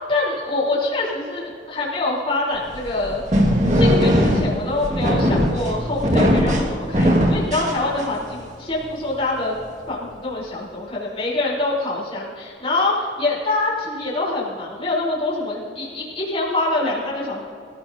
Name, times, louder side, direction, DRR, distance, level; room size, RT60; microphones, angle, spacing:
voice 1, 0.1-3.2 3.7-9.5 9.9-17.5, left 2 dB, 30° left, -6 dB, 3.9 m, -25 dB
sound 1, 2.7-8.3, equal, 40° right, 1.9 m, -19 dB
25.0 x 15.0 x 2.8 m, 2.4 s
head